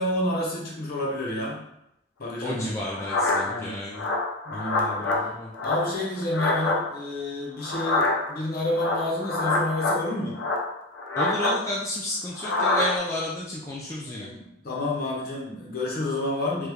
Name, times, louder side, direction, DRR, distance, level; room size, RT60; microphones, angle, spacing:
voice 1, 0.0-1.6 2.2-2.8 3.4-3.8 4.4-5.1 5.6-10.4 14.0-16.7, left 1 dB, 50° left, -3 dB, 0.9 m, -29 dB
voice 2, 2.4-4.1 5.0-5.5 11.2-14.3, left 1 dB, 15° left, -6 dB, 0.3 m, -31 dB
sound 1, 2.8-3.6 3.9-5.2 5.5-6.8 7.6-8.4 8.7-10.0 10.3-11.6 12.3-13.0, left 2 dB, 70° left, 0.5 m, -26 dB
3.1 x 2.3 x 3.4 m, 0.82 s
head